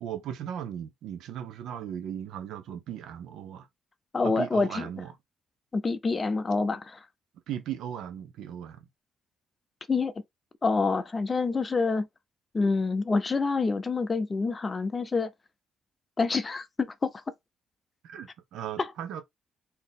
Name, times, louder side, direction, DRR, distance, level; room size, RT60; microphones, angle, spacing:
voice 1, 0.0-3.7 4.2-5.1 7.5-8.9 18.0-19.2, right 9 dB, 80° right, 0.6 m, -37 dB
voice 2, 4.1-4.9 5.7-7.1 9.9-10.1 10.6-12.1 12.5-15.3 16.2-17.1, left 4 dB, 30° left, 0.5 m, -27 dB
4.1 x 2.8 x 3.4 m
cardioid pair, 90°, 0 cm